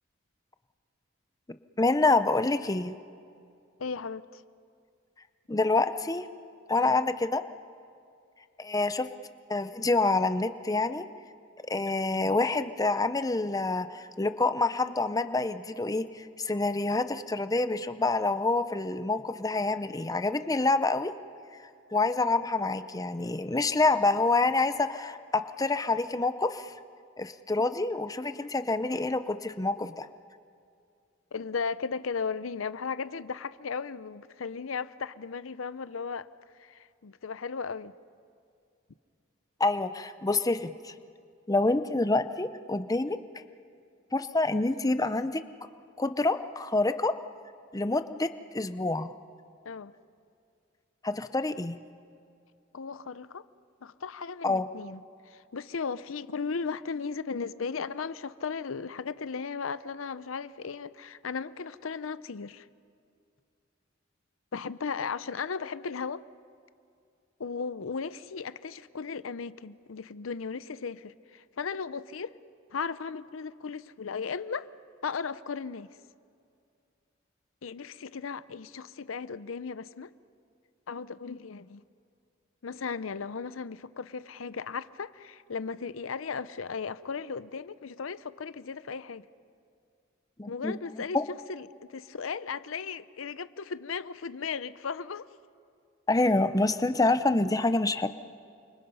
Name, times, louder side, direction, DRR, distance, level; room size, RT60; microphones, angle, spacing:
voice 1, 1.8-2.9 5.5-6.3 6.7-7.4 8.6-9.1 9.5-11.0 11.7-21.1 21.9-26.7 27.2-30.1 39.6-40.9 41.5-43.2 44.1-45.4 46.0-47.1 47.7-49.1 51.0-51.8 54.4-54.7 90.4-90.7 91.1-91.2 96.1-98.1, left 3 dB, 20° left, 0.6 m, -27 dB
voice 2, 3.8-4.4 6.8-7.0 31.3-36.3 36.6-37.9 49.6-49.9 52.7-53.5 53.8-62.7 64.5-66.2 67.4-72.3 72.7-74.7 75.0-75.9 77.6-80.1 80.9-81.8 82.6-89.3 90.5-91.2 91.5-95.3, left 5 dB, 85° left, 0.6 m, -36 dB
29.0 x 25.0 x 5.6 m
head